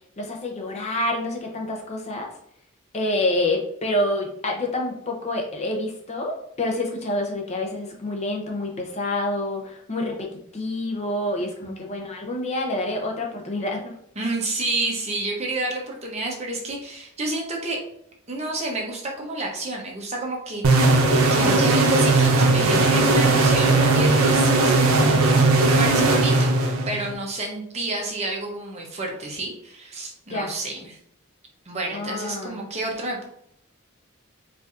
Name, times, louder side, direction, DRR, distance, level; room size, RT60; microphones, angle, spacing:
voice 1, 0.2-2.3 2.9-10.3 10.5-13.9 30.3-30.5 31.9-32.6, left 1 dB, 30° left, 1 dB, 0.5 m, -27 dB
voice 2, 14.2-17.8 18.3-21.0 21.3-26.5 26.9-31.0 31.7-33.2, right 2 dB, 30° right, 0 dB, 0.7 m, -29 dB
sound 1, 20.6-27.1, right 2 dB, 85° right, 0.6 m, -18 dB
4.4 x 2.5 x 2.5 m, 0.72 s
head